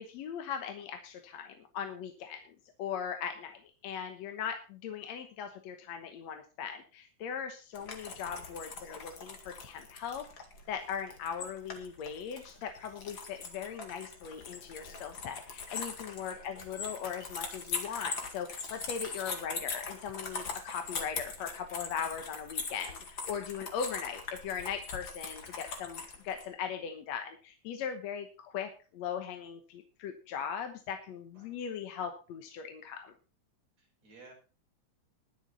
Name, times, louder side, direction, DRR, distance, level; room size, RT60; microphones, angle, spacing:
voice 1, 0.0-10.2 10.7-33.1, left 7 dB, 70° left, 6 dB, 2.2 m, -39 dB
sound 1, 7.7-26.5, left 4 dB, 40° left, 2.5 m, -41 dB
voice 2, 33.8-34.3, right 3 dB, 60° right, 0 dB, 6.9 m, -56 dB
20.5 x 7.3 x 4.1 m, 0.36 s
omnidirectional pair, 3.4 m